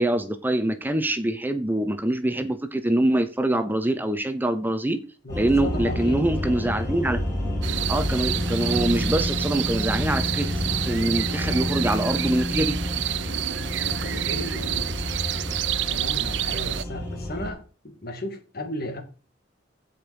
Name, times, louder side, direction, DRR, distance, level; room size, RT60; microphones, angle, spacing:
voice 1, 0.0-5.0 5.3-7.5 7.9-10.5 10.9-12.8, right 1 dB, 10° right, 0.8 m, -24 dB
voice 2, 5.2-6.2 13.8-15.2 15.8-19.0, left 1 dB, 55° left, 2.0 m, -35 dB
sound 1, 5.3-17.5, left 1 dB, 15° left, 4.7 m, -29 dB
sound 2, 7.6-16.8, right 12 dB, 70° right, 0.5 m, -29 dB
15.0 x 5.2 x 4.8 m
head